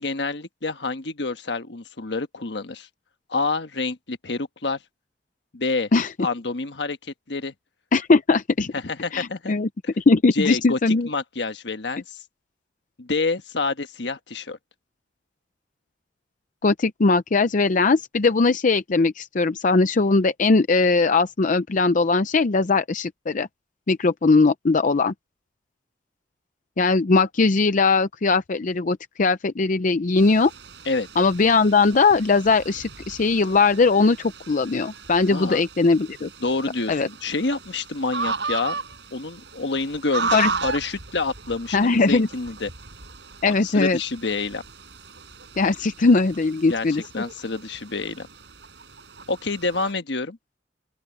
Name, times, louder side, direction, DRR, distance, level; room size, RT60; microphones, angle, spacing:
voice 1, 0.0-2.9 3.3-4.8 5.5-5.9 6.2-7.0 7.3-7.5 8.7-9.5 9.8-9.9 10.3-12.2 13.0-14.6 30.8-31.1 35.3-35.6 36.4-38.8 39.1-42.7 43.4-44.6 46.7-48.3 49.3-50.4, left 3 dB, 70° left, 1.4 m, -28 dB
voice 2, 7.9-8.7 9.1-9.7 10.0-11.1 16.6-23.5 23.9-25.1 26.8-30.5 31.2-36.3 36.9-37.1 40.3-40.5 41.7-42.3 43.4-44.0 45.6-47.2, left 3 dB, 45° left, 0.5 m, -20 dB
sound 1, 30.2-49.9, right 4 dB, 70° right, 6.6 m, -36 dB
open air
head